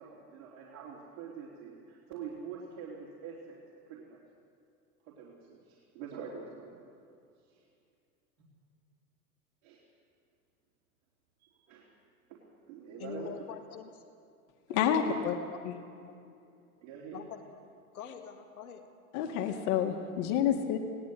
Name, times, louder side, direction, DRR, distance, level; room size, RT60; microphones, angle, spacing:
voice 1, 0.0-4.2 5.0-6.8 7.4-7.6 9.6-9.8 11.4-11.9 12.3-12.4 12.7-13.3 14.7-15.2 16.8-17.2, right 6 dB, 60° right, -5 dB, 4.0 m, -45 dB
voice 2, 13.0-14.0 17.1-17.4 17.9-18.9, left 6 dB, 75° left, 5 dB, 2.1 m, -44 dB
voice 3, 14.7-15.3 15.6-15.7 19.1-20.8, left 9 dB, 55° left, 3 dB, 2.0 m, -29 dB
21.0 x 17.5 x 8.1 m, 2.5 s
figure-of-eight pair, 80°, 44 cm